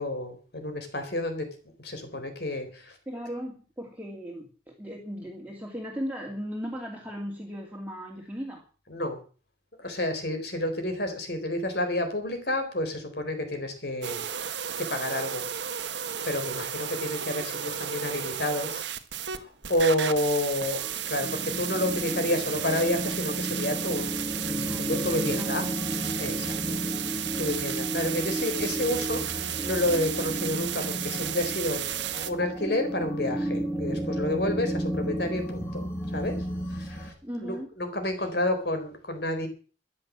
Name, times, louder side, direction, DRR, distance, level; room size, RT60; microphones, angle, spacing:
voice 1, 0.0-1.5 1.8-2.9 8.9-9.2 9.8-14.2 14.8-15.4 16.2-18.8 19.4-24.1 24.5-25.7 26.2-26.8 27.1-31.8 32.1-36.4 36.7-37.1 37.4-39.5, left 1 dB, 60° left, 7 dB, 4.2 m, -30 dB
voice 2, 3.1-8.6 24.6-25.5 26.7-26.9 37.2-37.7, equal, 10° right, -1 dB, 2.6 m, -37 dB
sound 1, 14.0-19.4 19.6-32.3, right 10 dB, 75° right, 1.5 m, -33 dB
sound 2, 20.7-37.1, equal, 15° left, 4.4 m, -33 dB
14.0 x 11.0 x 7.5 m, 0.39 s
head